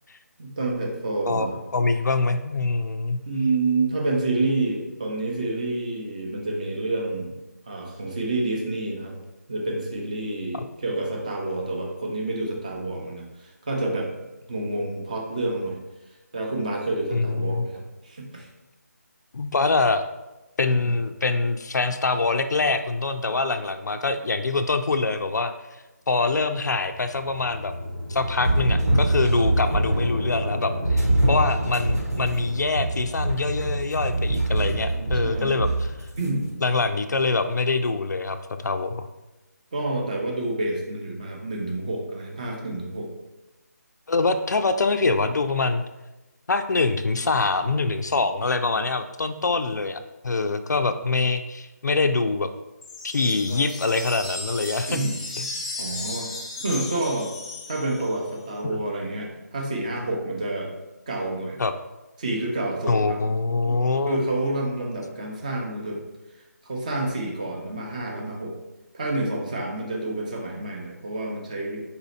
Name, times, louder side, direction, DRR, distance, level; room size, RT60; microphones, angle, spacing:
voice 1, 0.4-1.6 3.2-7.4 7.7-9.1 9.5-14.1 14.5-15.8 16.3-18.5 20.7-20.8 31.6-32.0 33.8-33.9 34.9-35.7 36.2-36.5 39.7-43.1 53.5-53.7 54.9-55.1 55.8-56.3 56.6-57.3 57.7-60.7 61.1-61.6 62.2-63.2 63.5-63.8 64.1-66.0 66.6-68.6 68.9-71.8, right 2 dB, 25° right, 0 dB, 0.6 m, -28 dB
voice 2, 1.3-3.2 10.5-10.7 17.1-17.7 19.3-20.0 20.6-25.5 26.1-27.7 28.1-35.9 36.6-39.0 44.1-45.8 46.5-52.5 53.0-55.0 55.4-55.5 58.6-58.8 61.6-61.7 62.9-64.2, left 3 dB, 80° left, 8 dB, 0.4 m, -24 dB
sound 1, 26.4-36.5, equal, 85° right, 1.2 m, -32 dB
sound 2, 28.3-30.1 30.8-36.3, right 2 dB, 60° right, 1.1 m, -24 dB
sound 3, 52.8-58.3, left 2 dB, 20° left, 0.4 m, -35 dB
4.2 x 2.7 x 4.0 m, 1.0 s
figure-of-eight pair, 170°, 9 cm